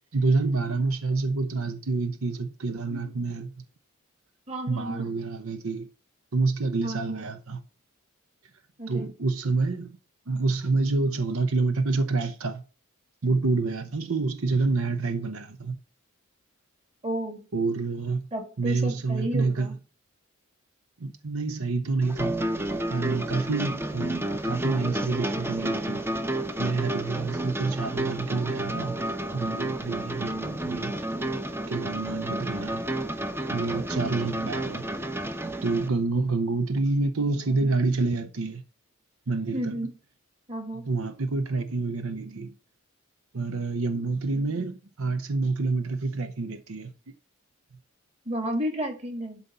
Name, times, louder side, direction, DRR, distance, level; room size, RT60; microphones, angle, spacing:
voice 1, 0.1-3.5 4.7-5.9 6.3-7.6 8.9-10.0 10.3-12.6 13.2-15.8 17.5-18.2 18.6-19.7 21.0-22.4 22.9-26.0 26.6-29.0 29.3-30.9 31.7-32.8 33.5-34.9 35.6-38.6 39.3-39.8 40.8-42.5 43.3-46.9, right 3 dB, 75° right, 0.8 m, -27 dB
voice 2, 4.5-5.1 6.8-7.2 8.8-9.1 17.0-17.5 18.3-19.8 33.7-34.2 36.1-36.2 39.5-39.9 40.5-40.9 48.3-49.4, right 1 dB, 30° right, 2.3 m, -32 dB
sound 1, 22.0-35.9, right 1 dB, 10° right, 0.8 m, -31 dB
12.0 x 4.1 x 6.8 m
head